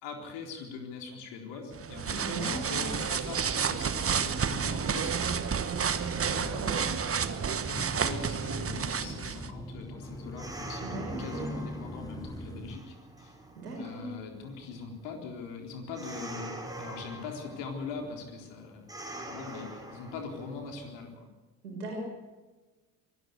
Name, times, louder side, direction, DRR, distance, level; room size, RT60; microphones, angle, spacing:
voice 1, 0.0-5.4 6.2-6.9 7.7-13.4 13.8-21.3, left 4 dB, 65° left, 2 dB, 4.1 m, -42 dB
sound 1, 1.7-9.5, right 6 dB, 30° right, 1.3 m, -30 dB
voice 2, 2.1-2.9 6.0-6.2 6.5-6.8 10.8-11.5 13.5-14.1 21.6-22.0, right 2 dB, 85° right, 0 dB, 5.8 m, -38 dB
sound 2, 2.9-12.8, equal, 10° left, 1.9 m, -43 dB
sound 3, 10.0-21.1, right 1 dB, 10° right, 5.0 m, -45 dB
24.0 x 13.0 x 8.4 m, 1.2 s
figure-of-eight pair, 45°, 46 cm